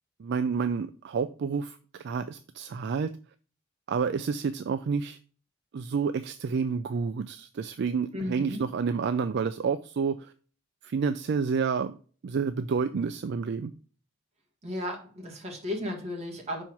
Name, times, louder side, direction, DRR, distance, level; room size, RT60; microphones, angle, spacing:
voice 1, 0.2-3.1 3.9-5.2 5.7-10.3 10.8-11.9 12.2-13.7, right 5 dB, 55° right, 10 dB, 0.3 m, -29 dB
voice 2, 8.1-8.6 14.6-16.6, left 1 dB, 30° right, 0 dB, 1.9 m, -34 dB
5.7 x 4.4 x 4.6 m, 0.40 s
head